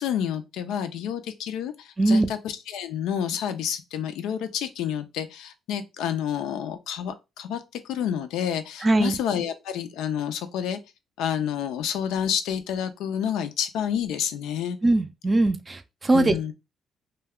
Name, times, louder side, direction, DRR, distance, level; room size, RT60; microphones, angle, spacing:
voice 1, 0.0-10.8 11.2-14.8 16.1-16.5, left 9 dB, 90° left, 0.4 m, -29 dB
voice 2, 2.0-2.3 8.8-9.1 14.8-16.4, right 2 dB, 25° right, 0.4 m, -21 dB
2.2 x 2.2 x 3.5 m
cardioid pair, 90°, 0 cm